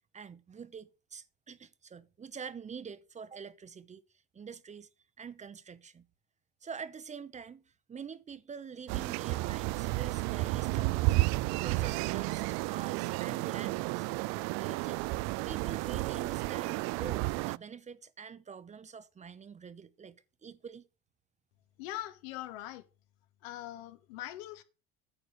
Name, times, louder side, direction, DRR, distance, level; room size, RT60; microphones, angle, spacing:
voice 1, 0.1-4.0 4.3-4.9 5.2-6.1 6.6-11.2 11.5-14.1 14.6-15.1 15.5-20.9, right 6 dB, 25° right, 0.8 m, -46 dB
sound 1, 8.9-17.6, right 21 dB, 60° right, 0.4 m, -32 dB
voice 2, 21.8-22.8 23.4-24.6, left 15 dB, 75° left, 1.5 m, -42 dB
9.7 x 6.7 x 6.4 m
supercardioid pair, 95°, 31 cm